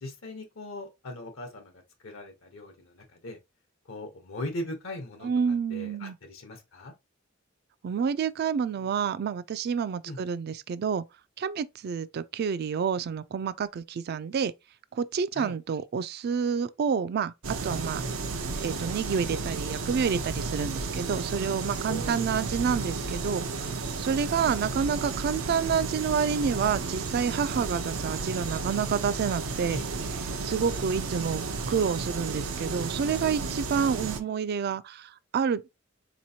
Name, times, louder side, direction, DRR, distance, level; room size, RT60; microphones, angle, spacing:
voice 1, 0.0-1.7 2.0-3.4 3.9-5.3 5.7-6.9 10.0-10.2 15.3-15.5 21.9-22.2 29.7-29.8, left 1 dB, 75° left, 0.8 m, -39 dB
voice 2, 5.2-6.2 7.8-11.0 11.4-14.5 14.9-18.0 18.5-29.8 30.4-35.6, right 6 dB, 50° right, 0.3 m, -29 dB
sound 1, 17.4-34.2, right 3 dB, 90° right, 0.6 m, -33 dB
4.0 x 3.0 x 2.7 m
head